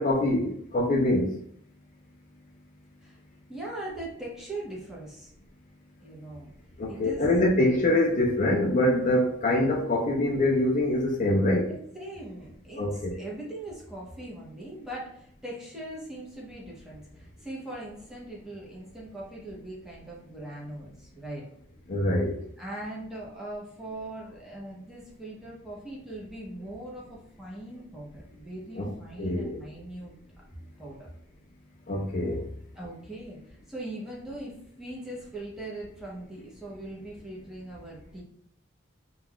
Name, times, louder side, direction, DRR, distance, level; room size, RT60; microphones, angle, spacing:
voice 1, 0.0-1.3 6.8-11.7 12.8-13.1 21.9-22.4 28.8-28.9 29.2-29.6 31.9-32.5, left 1 dB, 40° left, -1 dB, 0.4 m, -24 dB
voice 2, 3.5-5.3 6.0-6.5 6.9-7.3 11.7-21.5 22.6-30.1 30.8-31.1 32.7-38.2, right 1 dB, ahead, -5 dB, 0.7 m, -40 dB
2.3 x 2.2 x 3.4 m, 0.67 s
head